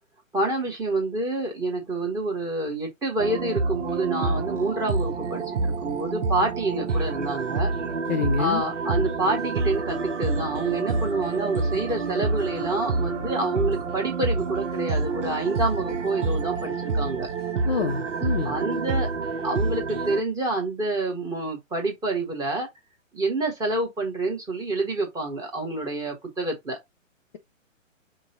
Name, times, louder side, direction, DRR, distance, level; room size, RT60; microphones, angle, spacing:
voice 1, 0.3-7.7 8.4-17.3 18.4-19.1 19.4-22.7 23.1-26.8, right 2 dB, 10° right, 1.1 m, -28 dB
sound 1, 3.2-20.2, right 3 dB, 65° right, 0.9 m, -28 dB
voice 2, 8.1-8.6 17.6-18.5, left 6 dB, 35° left, 0.6 m, -27 dB
5.3 x 2.3 x 3.9 m
figure-of-eight pair, 130°, 40 cm